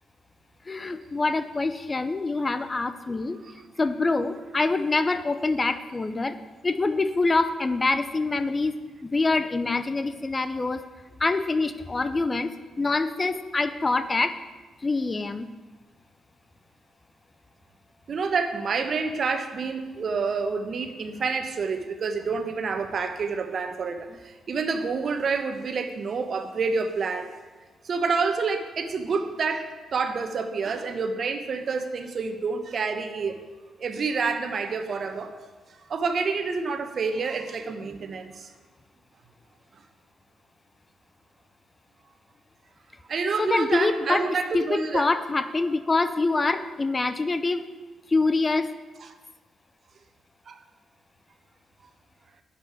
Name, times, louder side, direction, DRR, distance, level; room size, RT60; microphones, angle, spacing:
voice 1, 0.7-3.4 3.8-6.4 6.6-8.8 9.1-10.9 11.2-14.4 14.8-15.5 43.4-47.6 48.1-48.7, left 3 dB, 30° left, 12 dB, 0.7 m, -25 dB
voice 2, 18.1-27.3 27.8-33.3 33.8-35.4 35.9-38.5 43.1-45.1 49.0-49.1 50.5-50.6, right 4 dB, 50° right, 7 dB, 1.2 m, -28 dB
11.0 x 5.4 x 8.6 m, 1.3 s
hypercardioid pair, 40°, 0 cm